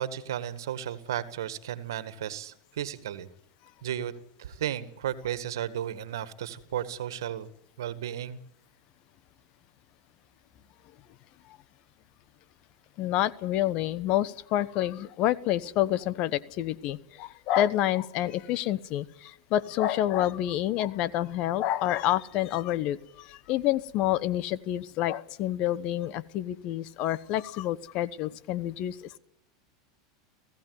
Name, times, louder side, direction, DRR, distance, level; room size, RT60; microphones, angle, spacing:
voice 1, 0.0-3.3 3.8-4.1 4.4-7.5 7.8-8.4, right 10 dB, 85° right, 13 dB, 1.7 m, -34 dB
voice 2, 13.0-29.2, left 13 dB, 50° left, 17 dB, 1.0 m, -28 dB
17.5 x 16.0 x 9.4 m, 0.77 s
supercardioid pair, 120°, 2 cm